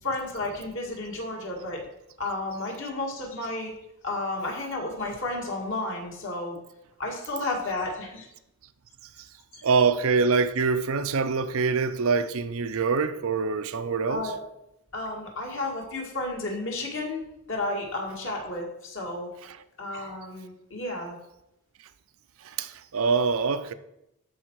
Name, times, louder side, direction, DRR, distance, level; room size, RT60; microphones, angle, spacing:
voice 1, 0.0-1.8 2.2-3.7 4.0-6.6 7.0-8.3 14.1-14.4 14.9-19.3 19.8-21.2, left 2 dB, 55° left, 2.0 m, -32 dB
voice 2, 9.6-14.3 22.4-23.7, right 5 dB, 70° right, 0.5 m, -25 dB
12.5 x 4.4 x 4.7 m
head